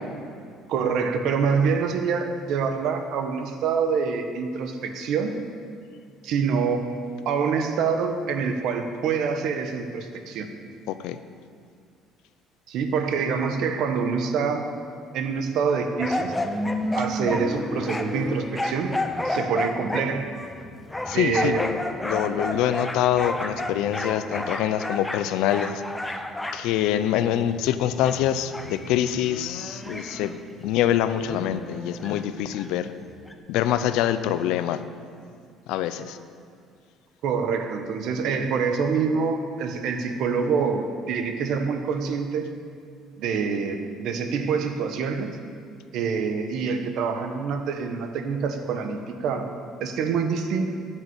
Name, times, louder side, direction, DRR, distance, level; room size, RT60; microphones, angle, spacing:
voice 1, 0.7-5.4 6.2-6.9 7.2-10.5 12.7-14.7 15.1-16.3 16.9-19.0 19.2-20.3 21.1-21.6 37.2-42.5 43.2-45.4 45.9-49.5 49.8-50.7, right 5 dB, 60° right, 6 dB, 1.2 m, -26 dB
voice 2, 10.9-11.2 21.1-25.8 26.5-32.9 33.5-34.8 35.7-36.2, left 11 dB, 80° left, 12 dB, 0.6 m, -25 dB
sound 1, 16.0-30.4 30.9-32.7 33.3-33.4, left 1 dB, 5° left, 0.6 m, -31 dB
9.5 x 9.2 x 8.1 m, 2.2 s
cardioid pair, 160°, 0 cm